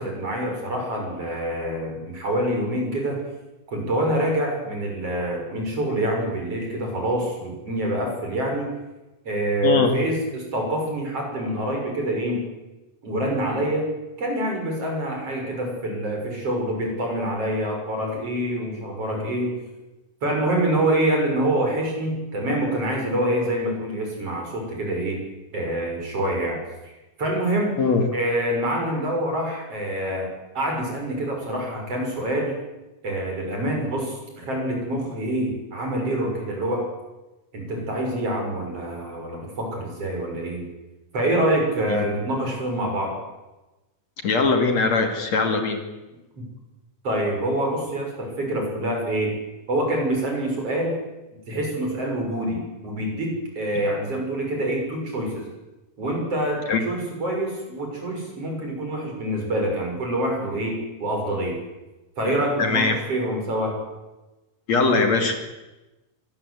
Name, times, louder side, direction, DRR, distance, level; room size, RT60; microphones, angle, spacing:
voice 1, 0.0-3.2 3.7-8.7 9.3-12.5 13.0-13.9 14.2-19.6 20.2-25.2 25.5-26.6 26.8-26.9 27.2-27.8 28.1-32.5 33.0-36.9 37.5-40.6 41.1-43.1 46.4-46.5 47.0-49.4 49.7-51.0 51.5-55.4 56.0-61.6 62.2-63.8, right 1 dB, 45° right, 1 dB, 7.6 m, -26 dB
voice 2, 9.6-9.9 27.8-28.0 41.9-42.1 44.2-45.8 56.7-56.8 62.6-63.0 64.7-65.3, left 4 dB, 55° left, 5 dB, 3.4 m, -21 dB
24.5 x 20.5 x 8.2 m, 1.1 s
omnidirectional pair, 3.8 m